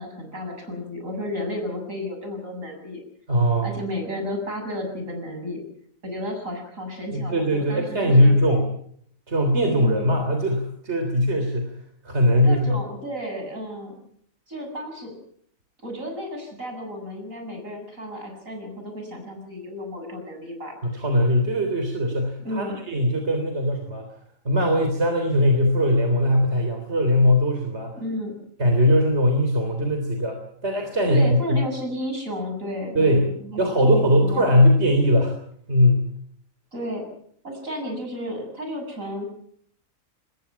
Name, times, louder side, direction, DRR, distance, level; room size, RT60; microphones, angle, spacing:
voice 1, 0.0-3.0 3.6-5.6 6.0-8.3 9.8-10.1 12.4-13.9 14.5-15.1 15.8-20.8 22.4-22.8 27.9-28.4 31.1-34.5 36.7-37.1 37.4-39.3, left 1 dB, 75° right, 4 dB, 7.8 m, -32 dB
voice 2, 3.3-3.7 7.1-8.7 9.3-11.8 12.0-12.8 20.8-24.1 24.5-27.9 28.6-31.6 32.9-33.3 33.6-35.4 35.7-36.1, equal, 55° right, 4 dB, 3.8 m, -20 dB
26.0 x 20.5 x 5.8 m, 0.64 s
omnidirectional pair, 1.4 m